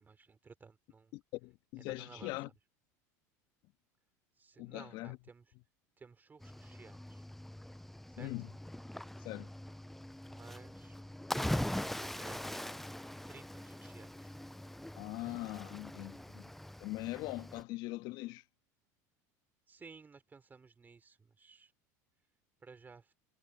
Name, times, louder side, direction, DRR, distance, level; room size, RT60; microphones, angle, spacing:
voice 1, 0.0-1.1 1.8-2.4 4.4-5.5 6.0-7.3 8.1-8.3 10.2-11.0 11.3-12.8 13.1-14.3 19.7-21.7 22.6-23.1, right 5 dB, 20° right, 3.7 m, -56 dB
voice 2, 1.1-2.5 4.6-5.2 8.2-8.5 9.2-9.5 14.9-16.5 16.8-18.4, left 20 dB, 60° left, 1.5 m, -41 dB
Cricket / Waves surf, 6.4-17.6, left 1 dB, 5° left, 0.3 m, -42 dB
supercardioid pair, 100°, 9 cm